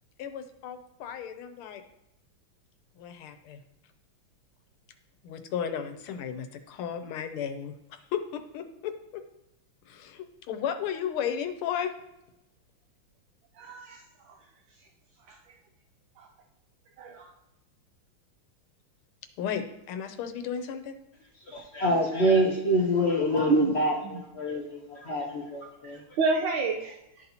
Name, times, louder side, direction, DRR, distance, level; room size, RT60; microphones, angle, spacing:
voice 1, 0.2-1.8 3.0-3.6 5.2-7.8 8.1-9.2 9.9-11.9 19.4-21.0, left 8 dB, 85° left, 8 dB, 1.6 m, -34 dB
voice 2, 13.6-14.0 15.3-15.4 16.2-16.3 17.0-17.3 23.5-23.7 24.0-24.2 26.2-26.9, right 4 dB, 75° right, 2 dB, 1.4 m, -28 dB
voice 3, 21.5-24.8 25.1-25.7, equal, 70° left, -1 dB, 0.6 m, -26 dB
12.0 x 4.0 x 2.8 m, 0.91 s
omnidirectional pair, 2.3 m